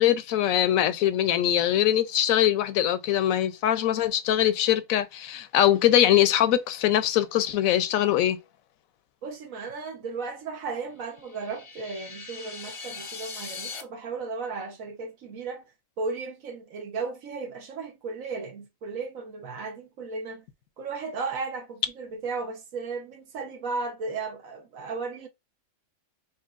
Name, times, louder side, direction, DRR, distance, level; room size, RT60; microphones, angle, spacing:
voice 1, 0.0-8.4, left 11 dB, 75° left, 1.0 m, -22 dB
voice 2, 9.2-15.6 16.0-20.4 20.8-25.3, right 4 dB, 70° right, 1.3 m, -35 dB
sound 1, 11.0-13.8, left 4 dB, 45° left, 0.4 m, -40 dB
5.7 x 2.8 x 2.4 m
omnidirectional pair, 1.5 m